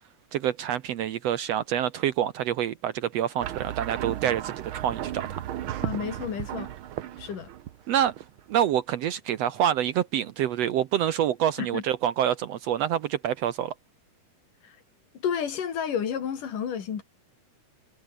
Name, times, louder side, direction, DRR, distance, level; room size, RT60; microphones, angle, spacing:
voice 1, 0.3-5.4 7.9-8.1 8.5-13.7, right 10 dB, 70° right, 1.7 m, -27 dB
sound 1, 3.4-8.6, right 12 dB, 85° right, 1.1 m, -35 dB
voice 2, 5.8-6.7 7.2-7.5 11.6-11.8 14.6-14.8 15.2-17.0, left 8 dB, 80° left, 4.3 m, -31 dB
omnidirectional pair, 3.7 m